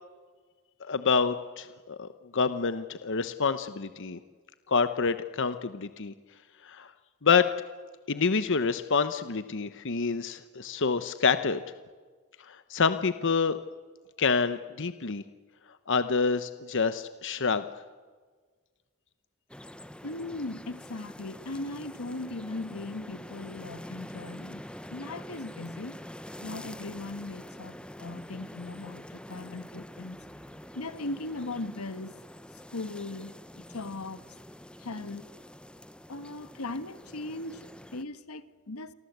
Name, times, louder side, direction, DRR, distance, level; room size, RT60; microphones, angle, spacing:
voice 1, 0.8-4.2 4.7-6.1 6.6-6.9 7.2-7.5 8.1-11.6 12.4-13.6 14.2-15.2 15.9-17.7, left 5 dB, 60° left, 1.0 m, -27 dB
sound 1, 19.5-38.0, left 1 dB, 5° left, 0.9 m, -46 dB
voice 2, 20.0-24.6 24.9-26.0 26.4-30.2 30.7-32.2 32.5-34.2 34.8-35.3 36.1-38.9, left 2 dB, 85° left, 1.4 m, -38 dB
29.0 x 23.5 x 8.1 m
head